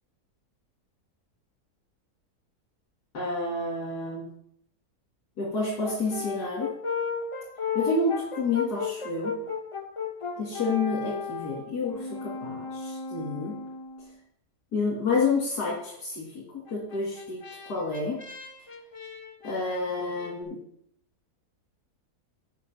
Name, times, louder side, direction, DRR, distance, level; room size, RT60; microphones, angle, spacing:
voice 1, 3.1-4.3 5.4-6.7 7.7-9.3 10.4-13.6 14.7-17.4 17.6-18.2 19.4-20.6, left 3 dB, 85° left, -5 dB, 2.7 m, -29 dB
Brass instrument, 5.8-14.2 16.7-20.3, left 5 dB, 35° left, 0.5 m, -35 dB
8.3 x 5.3 x 6.9 m, 0.70 s
omnidirectional pair, 1.7 m